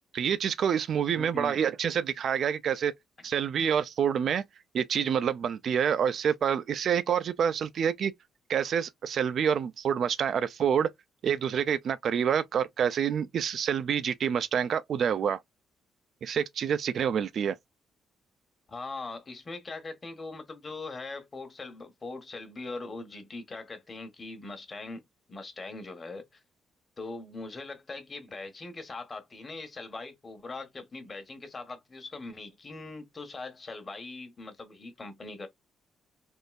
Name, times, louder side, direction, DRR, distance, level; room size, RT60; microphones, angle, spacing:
voice 1, 0.1-2.9 3.2-4.4 4.7-8.1 8.5-10.9 11.2-15.4 16.2-17.6, right 8 dB, 60° right, 0.4 m, -27 dB
voice 2, 1.2-1.6 18.7-25.0 25.3-26.4 27.0-35.5, left 3 dB, 30° left, 1.2 m, -41 dB
3.7 x 2.6 x 2.4 m
cardioid pair, 90°, 0 cm